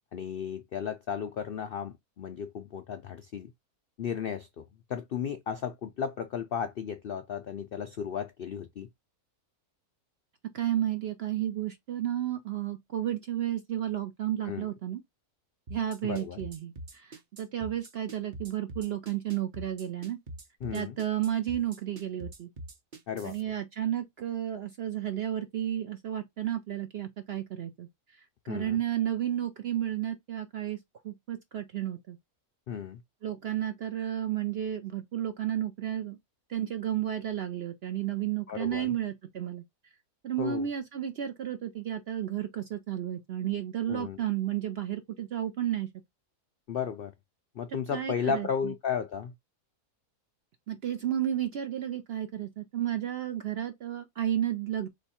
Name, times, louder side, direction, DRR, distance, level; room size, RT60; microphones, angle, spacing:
voice 1, 0.1-3.5 4.0-4.6 4.9-8.9 14.4-14.7 16.0-16.4 20.6-21.0 23.1-23.3 28.5-28.8 32.7-33.0 38.5-39.0 40.4-40.7 43.9-44.2 46.7-47.1 47.5-49.3, left 7 dB, 80° left, 0.5 m, -34 dB
voice 2, 10.5-15.0 15.7-20.2 20.7-22.5 23.2-27.9 28.4-30.8 31.0-32.2 33.2-36.2 36.5-39.6 40.2-45.9 47.9-48.5 50.7-54.9, right 11 dB, 65° right, 0.6 m, -32 dB
sound 1, 15.7-23.4, right 1 dB, 35° right, 0.9 m, -43 dB
3.4 x 3.1 x 4.1 m
omnidirectional pair, 1.6 m